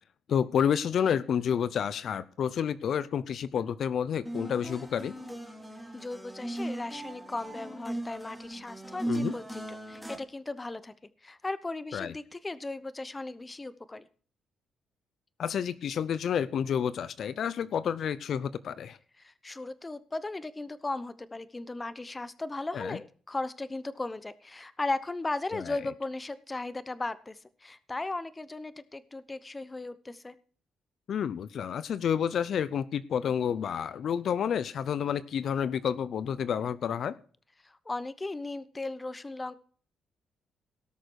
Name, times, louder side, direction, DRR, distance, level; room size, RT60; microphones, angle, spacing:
voice 1, 0.3-5.1 9.1-9.3 11.9-12.1 15.4-19.0 22.7-23.0 25.5-25.8 31.1-37.1, left 8 dB, 60° left, 16 dB, 0.6 m, -29 dB
sound 1, 4.2-10.2, right 1 dB, 5° left, 2.7 m, -37 dB
voice 2, 5.9-10.9 11.2-14.1 19.2-30.3 37.6-39.6, left 2 dB, 20° left, 15 dB, 0.9 m, -37 dB
17.5 x 6.6 x 4.7 m, 0.44 s
cardioid pair, 90°, 0 cm